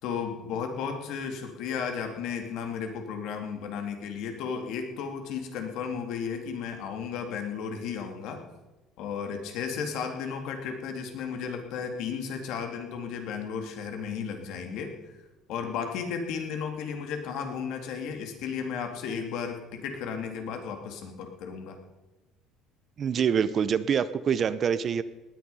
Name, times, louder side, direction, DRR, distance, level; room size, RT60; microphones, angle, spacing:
voice 1, 0.0-8.4 9.0-14.9 15.5-21.8, left 6 dB, 65° left, 5 dB, 2.4 m, -34 dB
voice 2, 23.0-25.0, right 7 dB, 35° right, 15 dB, 0.6 m, -25 dB
18.5 x 10.0 x 5.5 m, 1.1 s
cardioid pair, 155°, 0 cm